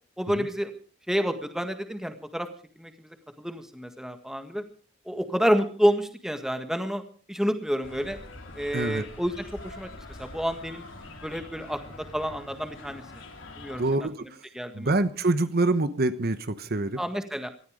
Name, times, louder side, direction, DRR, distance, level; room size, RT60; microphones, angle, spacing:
voice 1, 0.2-0.7 1.1-2.5 2.8-4.6 5.0-7.0 7.3-8.2 8.5-9.9 10.2-10.8 11.2-13.0 13.6-13.8 14.2-14.3 14.5-14.9 17.0-17.5, equal, ahead, 7 dB, 1.7 m, -29 dB
sound 1, 7.8-13.9, left 2 dB, 70° left, 3.9 m, -44 dB
voice 2, 8.7-9.0 13.8-14.4 14.7-17.0, right 2 dB, 50° right, 11 dB, 1.0 m, -26 dB
19.0 x 13.5 x 5.0 m, 0.42 s
head